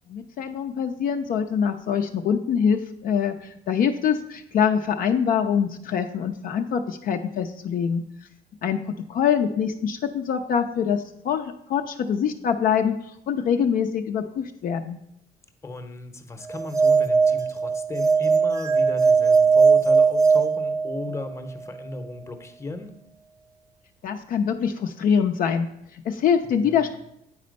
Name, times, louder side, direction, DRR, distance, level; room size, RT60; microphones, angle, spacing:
voice 1, 0.1-8.0 8.6-15.0 24.0-25.7 25.9-26.9, left 7 dB, 55° left, 5 dB, 0.5 m, -24 dB
voice 2, 15.6-22.9 26.6-26.9, left 3 dB, 15° left, 7 dB, 0.8 m, -36 dB
sound 1, 16.5-21.3, right 5 dB, 20° right, 0.5 m, -19 dB
8.6 x 4.3 x 5.2 m, 0.79 s
cardioid pair, 110°, 17 cm